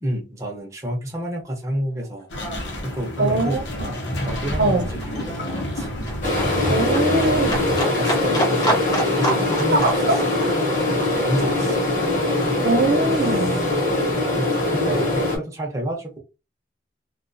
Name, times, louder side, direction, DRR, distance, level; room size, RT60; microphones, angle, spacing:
voice 1, 0.0-2.3 2.8-3.6 4.2-5.9 6.9-7.0 7.7-10.2 10.9-11.8 14.7-16.2, right 1 dB, 15° right, 0.6 m, -29 dB
Livestock farm animals working animals, 1.6-1.8 2.0-13.0 13.3-14.3 14.7-14.8, right 1 dB, 20° left, 0.7 m, -30 dB
sound 1, 2.3-7.8, equal, 75° left, 0.7 m, -29 dB
voice 2, 3.2-3.9 4.6-4.9 6.7-7.8 9.7-10.2 12.6-13.6, right 2 dB, 75° right, 0.7 m, -22 dB
sound 2, 6.2-15.4, left 2 dB, 45° left, 1.0 m, -22 dB
2.4 x 2.3 x 2.5 m
head